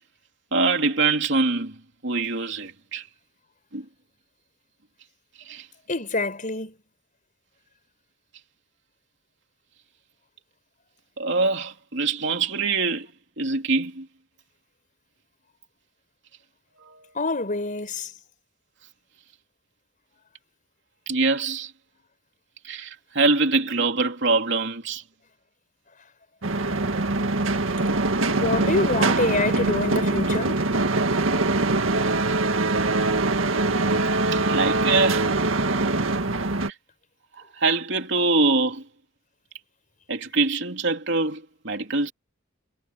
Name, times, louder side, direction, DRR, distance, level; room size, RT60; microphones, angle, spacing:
voice 1, 0.5-1.8 2.0-3.1 3.7-3.8 5.4-5.7 11.2-13.1 13.4-14.1 16.8-17.0 21.1-21.7 22.6-25.0 34.3-35.3 37.4-38.8 40.1-42.1, right 3 dB, 65° right, 3.3 m, -24 dB
voice 2, 5.9-6.7 17.1-18.1 28.3-30.6, left 2 dB, 40° left, 5.0 m, -26 dB
sound 1, 26.4-36.7, right 2 dB, 85° right, 1.9 m, -23 dB
head